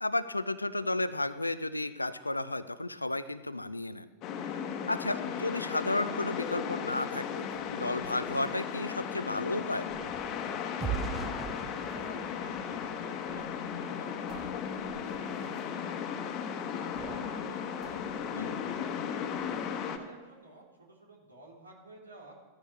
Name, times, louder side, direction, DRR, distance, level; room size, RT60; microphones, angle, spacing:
voice 1, 0.0-4.1 4.4-9.9 18.3-18.6, left 2 dB, 85° left, 15 dB, 0.5 m, -33 dB
sound 1, 4.2-20.0, left 7 dB, 35° left, 1.3 m, -36 dB
sound 2, 7.5-8.7 9.8-10.4 10.8-12.2 13.2-13.5 13.8-13.9 14.3-15.7 16.9-17.5 17.8-18.9 19.4-19.8, right 4 dB, 40° right, 3.0 m, -52 dB
sound 3, 8.9-13.7 14.2-14.4 14.8-15.0, right 7 dB, 15° right, 1.0 m, -41 dB
voice 2, 11.9-14.5 14.9-16.4 16.8-18.9 19.5-22.3, right 2 dB, 80° right, -2 dB, 3.9 m, -53 dB
16.0 x 14.0 x 3.4 m, 1.2 s
figure-of-eight pair, 90°, 0 cm